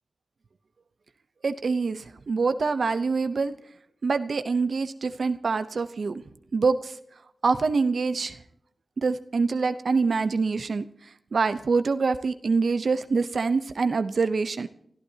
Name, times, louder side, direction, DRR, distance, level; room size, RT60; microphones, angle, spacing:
voice 1, 1.4-3.5 4.0-6.2 6.5-6.9 7.4-8.4 9.0-10.9 11.3-14.7, right 4 dB, 80° right, 11 dB, 0.7 m, -25 dB
28.5 x 14.0 x 2.8 m, 0.74 s
wide cardioid pair, 65°, 0 cm